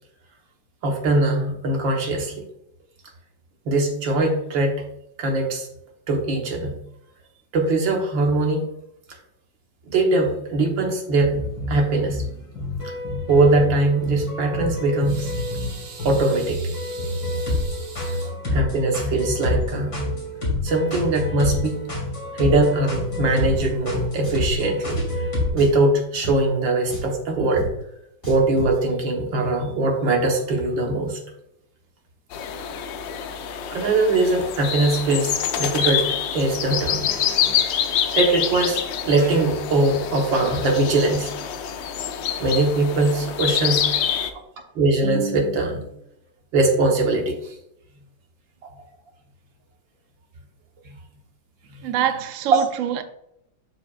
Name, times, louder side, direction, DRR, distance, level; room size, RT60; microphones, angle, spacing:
voice 1, 0.8-2.5 3.7-4.8 5.2-5.7 6.1-6.8 7.5-8.6 9.9-11.4 11.7-12.2 13.3-20.0 20.6-21.8 22.4-25.3 25.5-27.7 28.3-31.2 33.7-37.8 38.1-41.4 42.4-43.9 44.8-45.9 46.5-47.6 48.6-48.7 50.9-51.0 51.7-51.8, right 2 dB, 85° right, 2.1 m, -22 dB
sound 1, 11.2-25.5, left 2 dB, 60° left, 3.9 m, -28 dB
Drum, 23.6-23.7 24.2-24.5 24.9-25.0 25.6-25.8 26.2-26.4 26.9-27.2 27.6-27.7 28.2-28.8, right 2 dB, 35° left, 3.3 m, -31 dB
sound 2, 32.3-44.3, left 9 dB, 80° left, 1.4 m, -26 dB
voice 2, 51.8-53.0, right 10 dB, 65° right, 0.8 m, -25 dB
12.0 x 5.0 x 2.4 m
omnidirectional pair, 2.0 m